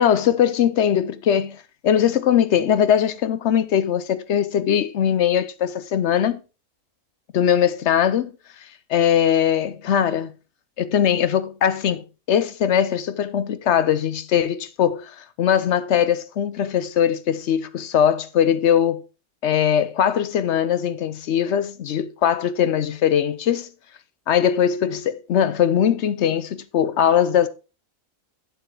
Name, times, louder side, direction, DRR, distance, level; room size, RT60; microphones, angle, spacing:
voice 1, 0.0-6.4 7.3-8.3 8.9-10.3 10.8-19.0 19.4-23.7 24.3-27.5, left 9 dB, 65° left, 0.8 m, -20 dB
9.1 x 7.7 x 3.2 m
omnidirectional pair, 1.4 m